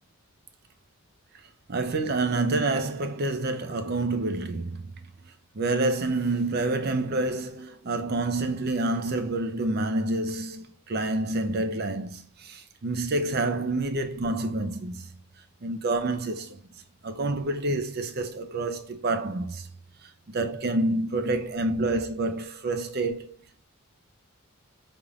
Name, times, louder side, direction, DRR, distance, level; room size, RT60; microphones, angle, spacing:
voice 1, 1.7-4.9 5.5-15.2 15.6-16.6 17.0-19.7 20.0-23.4, right 2 dB, 45° right, 0.5 m, -28 dB
5.2 x 3.5 x 2.4 m
head